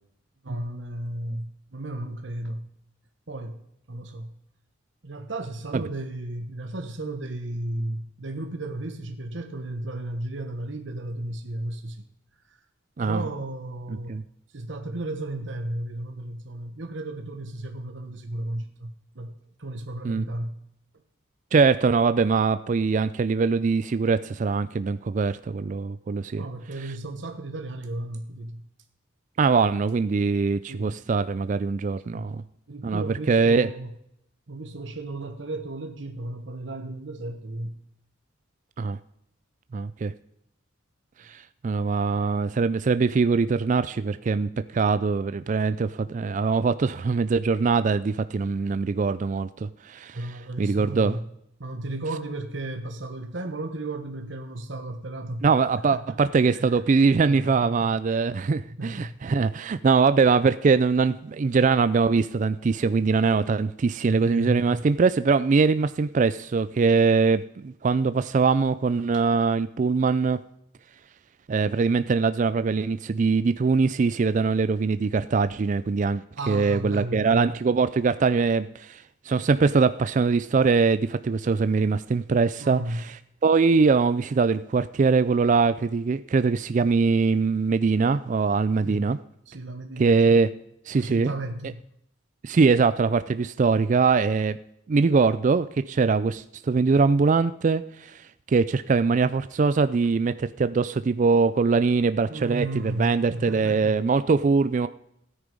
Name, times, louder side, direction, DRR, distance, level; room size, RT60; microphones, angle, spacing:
voice 1, 0.4-2.7 3.3-3.6 3.9-4.3 5.0-12.0 12.5-12.6 13.0-14.1 14.5-20.6 26.3-28.6 30.7-31.0 32.0-32.3 32.7-33.9 34.5-37.7 50.1-51.2 51.6-55.5 55.8-56.2 56.5-56.8 57.3-57.7 58.1-58.2 58.7-59.2 64.0-64.8 76.4-77.5 82.6-83.0 88.8-89.1 89.5-90.4 91.0-91.8 102.3-104.0, right 1 dB, 65° right, 6 dB, 1.1 m, -34 dB
voice 2, 13.9-14.2 20.0-20.2 21.5-26.4 29.4-32.4 32.8-33.7 38.8-39.0 39.7-40.1 41.2-50.2 50.6-51.2 55.4-70.4 71.5-83.0 83.4-89.2 90.0-90.5 90.9-91.3 92.4-94.6 94.9-104.9, right 4 dB, 40° right, 13 dB, 0.3 m, -22 dB
13.5 x 9.7 x 5.3 m, 0.76 s
head